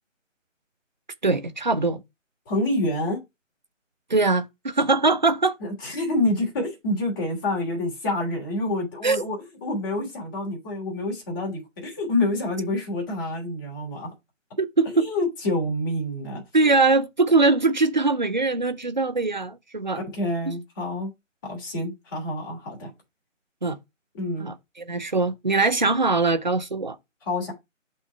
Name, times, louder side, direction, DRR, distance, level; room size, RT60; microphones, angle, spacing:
voice 1, 1.2-2.0 4.1-5.6 9.0-9.2 14.6-15.1 16.5-20.0 20.5-20.6 23.6-23.8 24.4-27.0, right 3 dB, 35° right, 0.7 m, -22 dB
voice 2, 2.5-3.2 5.6-14.1 14.9-16.4 19.9-21.1 21.5-22.9 24.1-24.5 27.3-27.5, left 1 dB, 15° left, 2.8 m, -27 dB
5.9 x 4.1 x 4.5 m
figure-of-eight pair, 155°, 39 cm